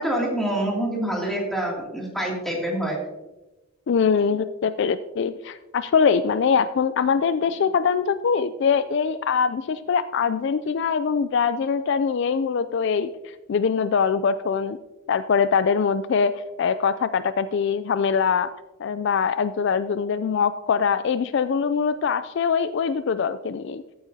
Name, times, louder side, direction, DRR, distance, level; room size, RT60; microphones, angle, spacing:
voice 1, 0.0-3.0, right 1 dB, ahead, -3 dB, 2.5 m, -26 dB
voice 2, 3.9-13.1 13.5-14.8 15.1-18.5 18.8-23.8, left 6 dB, 55° left, 13 dB, 0.3 m, -23 dB
14.5 x 8.8 x 2.7 m, 1.1 s
head